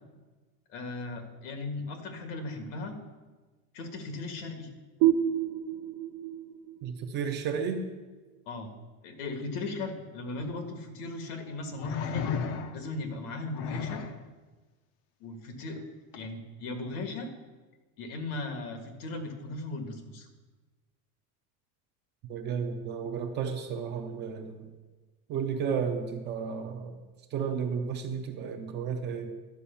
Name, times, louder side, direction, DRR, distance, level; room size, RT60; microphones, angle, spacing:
voice 1, 0.7-3.0 3.7-4.7 8.5-8.7 9.0-12.3 12.7-14.0 15.2-15.8 16.1-17.3 18.0-20.3, left 2 dB, 85° left, 5 dB, 1.9 m, -37 dB
sound 1, 5.0-8.4, right 11 dB, 60° right, 0.7 m, -30 dB
voice 2, 6.8-7.8 22.3-24.7 25.3-27.0 27.3-29.3, right 6 dB, 25° right, 5 dB, 0.4 m, -33 dB
sound 2, 10.4-10.5 11.8-13.0 13.5-14.2 16.1-16.3, left 6 dB, 35° left, 0.5 m, -34 dB
11.5 x 5.2 x 6.9 m, 1.3 s
cardioid pair, 180°, 44 cm